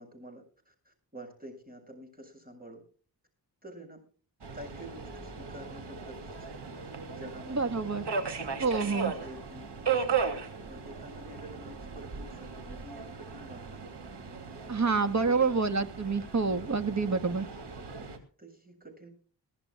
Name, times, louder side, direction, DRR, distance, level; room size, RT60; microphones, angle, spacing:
voice 1, 0.0-2.8 3.6-4.0 4.5-6.6 7.1-7.7 8.3-13.9 15.2-15.6 18.0-19.1, equal, 20° right, 4 dB, 7.1 m, -48 dB
Subway metro underground, 4.4-18.2, right 6 dB, 85° right, 2.9 m, -37 dB
voice 2, 7.5-8.0 8.6-9.1 14.7-17.5, right 4 dB, 45° right, 8 dB, 1.5 m, -27 dB
22.5 x 14.5 x 2.3 m, 0.41 s
wide cardioid pair, 80°, 40 cm